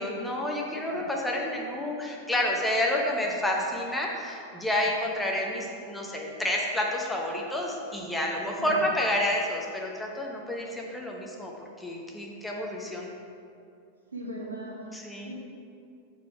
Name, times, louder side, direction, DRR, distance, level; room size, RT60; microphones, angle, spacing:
voice 1, 0.0-11.5 11.8-13.1 14.9-15.3, left 1 dB, 5° left, -1 dB, 0.9 m, -29 dB
voice 2, 14.1-14.8 15.2-15.3, right 1 dB, 80° right, -3 dB, 1.4 m, -38 dB
7.3 x 4.7 x 4.4 m, 2.5 s
figure-of-eight pair, 90°, 0 cm